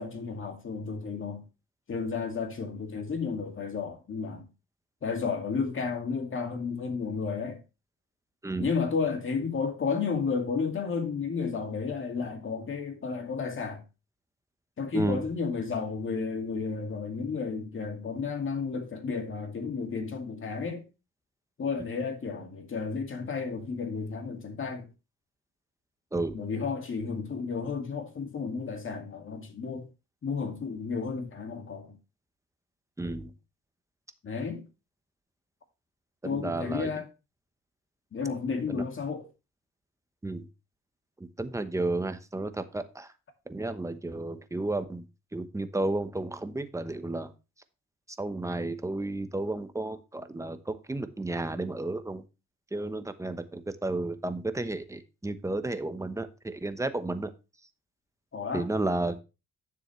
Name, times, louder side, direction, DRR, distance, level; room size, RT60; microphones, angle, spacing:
voice 1, 0.0-1.4 1.9-4.5 5.0-7.6 8.6-13.8 14.8-20.8 21.6-24.9 26.3-29.9 30.2-32.0 34.2-34.7 36.2-37.1 38.1-39.3 58.3-58.7, left 5 dB, 40° left, 2.3 m, -32 dB
voice 2, 14.9-15.2 26.1-26.4 33.0-33.3 36.2-36.9 38.7-38.8 40.2-40.5 41.2-43.1 43.5-45.0 45.3-47.3 48.2-52.2 52.7-57.3 58.5-59.2, right 2 dB, 10° right, 1.0 m, -32 dB
9.9 x 7.1 x 3.2 m
cardioid pair, 90°, 30 cm